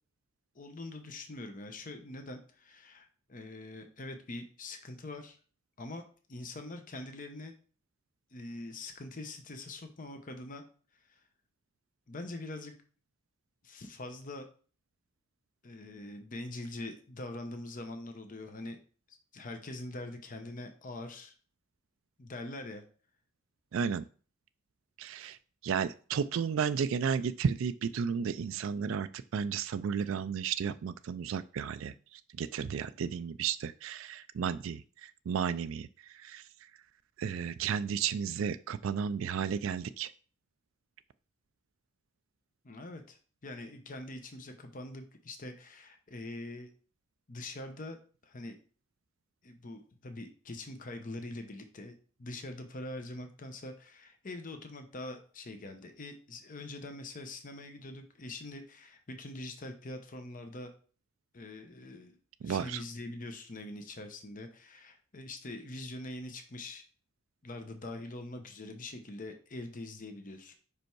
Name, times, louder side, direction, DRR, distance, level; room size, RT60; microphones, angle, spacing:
voice 1, 0.5-5.4 5.8-6.0 6.3-7.5 8.3-10.6 10.9-11.2 12.1-12.7 13.6-14.5 15.6-18.8 19.1-21.3 22.2-22.8 25.2-25.3 42.6-43.2 43.4-46.7 47.3-48.0 48.2-48.6 49.4-60.7 61.3-62.2 62.4-66.8 67.4-70.5, left 2 dB, 40° left, 6 dB, 0.8 m, -43 dB
voice 2, 23.7-24.0 25.0-25.4 25.6-36.4 37.2-40.1 62.4-62.8, right 7 dB, 65° right, 12 dB, 0.3 m, -33 dB
5.5 x 5.1 x 4.6 m, 0.40 s
head